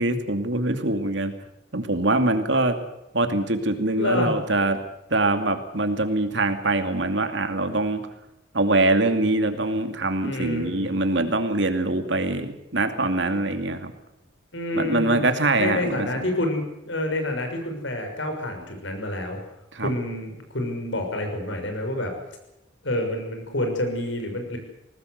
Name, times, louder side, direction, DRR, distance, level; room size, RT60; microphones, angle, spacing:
voice 1, 0.0-1.3 1.7-2.8 3.1-4.8 5.1-8.0 8.5-13.9 14.7-16.1 19.7-19.9, right 2 dB, 70° right, 7 dB, 2.5 m, -23 dB
voice 2, 4.0-4.3 10.2-11.0 14.5-15.2 15.6-19.4 19.8-22.1 22.8-24.6, left 1 dB, 80° left, 4 dB, 6.1 m, -28 dB
21.5 x 18.5 x 8.1 m, 0.89 s
head